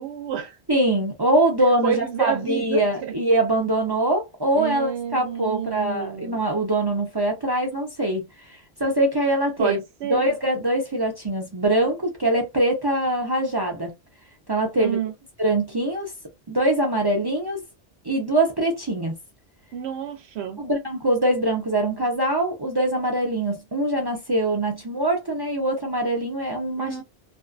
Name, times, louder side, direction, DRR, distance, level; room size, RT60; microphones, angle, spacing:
voice 1, 0.0-0.6 1.8-3.1 4.6-6.4 9.6-10.3 14.8-15.1 19.7-20.6 26.8-27.0, right 9 dB, 85° right, 0.9 m, -29 dB
voice 2, 0.7-9.8 10.1-13.9 14.5-15.0 15.4-16.1 16.5-17.6 18.1-19.1 20.6-27.0, right 1 dB, 30° right, 0.5 m, -23 dB
2.5 x 2.2 x 2.4 m
omnidirectional pair, 1.1 m